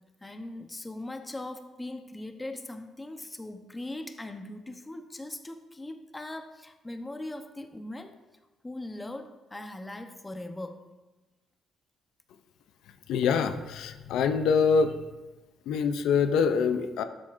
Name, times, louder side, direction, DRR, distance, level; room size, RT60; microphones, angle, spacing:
voice 1, 0.2-8.2 8.6-10.9, left 1 dB, 15° left, 7 dB, 0.8 m, -40 dB
voice 2, 13.1-15.0 15.7-17.0, left 6 dB, 85° left, 9 dB, 0.5 m, -25 dB
12.5 x 7.3 x 2.5 m, 1.1 s
cardioid pair, 90°, 0 cm